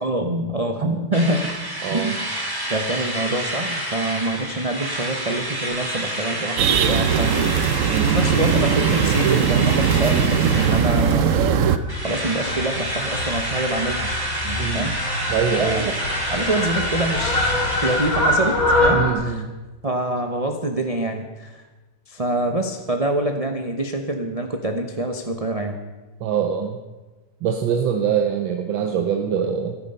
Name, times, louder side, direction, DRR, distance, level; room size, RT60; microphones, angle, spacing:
voice 1, 0.0-1.5 1.9-2.2 2.7-7.8 8.0-11.4 12.0-14.1 14.4-14.9 15.5-15.9 16.3-19.4 19.8-21.7 22.1-25.8, right 2 dB, 35° right, 4 dB, 0.6 m, -25 dB
Drill, 1.1-11.5 11.9-18.8, right 1 dB, 10° right, 2.1 m, -29 dB
voice 2, 1.8-2.2 7.8-8.1 14.6-14.9 15.3-15.8 18.9-19.5 26.2-26.8 27.4-29.7, right 7 dB, 80° right, 5 dB, 1.6 m, -23 dB
sound 1, 6.6-11.8, right 8 dB, 65° right, 0.8 m, -19 dB
Fowl, 9.7-19.1, left 1 dB, 45° left, 2.9 m, -25 dB
14.5 x 12.5 x 5.5 m, 1.2 s
omnidirectional pair, 2.0 m